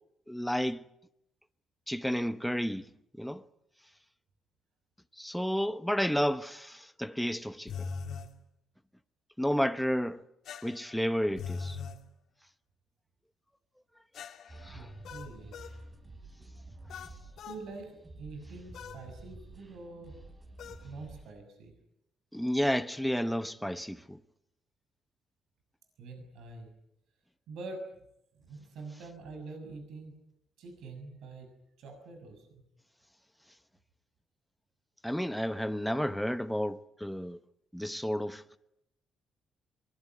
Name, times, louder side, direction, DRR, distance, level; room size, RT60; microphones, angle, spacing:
voice 1, 0.3-0.8 1.9-2.8 3.2-3.4 5.2-7.7 9.4-10.2 10.6-11.8 14.6-14.8 22.3-24.2 35.0-37.4 37.7-38.4, equal, ahead, 1.0 m, -31 dB
sound 1, 7.7-8.3 10.4-12.0 14.1-15.8 16.9-17.6 18.7-19.0 20.6-20.9, left 5 dB, 70° left, 2.6 m, -41 dB
sound 2, 14.5-21.2, right 2 dB, 25° right, 4.9 m, -50 dB
voice 2, 14.7-15.5 17.5-20.1 20.8-21.7 26.0-26.7 27.5-27.9 28.3-30.2 30.6-31.5 31.8-32.6, right 3 dB, 80° right, 6.6 m, -45 dB
23.5 x 21.0 x 9.7 m
cardioid pair, 90°, 0 cm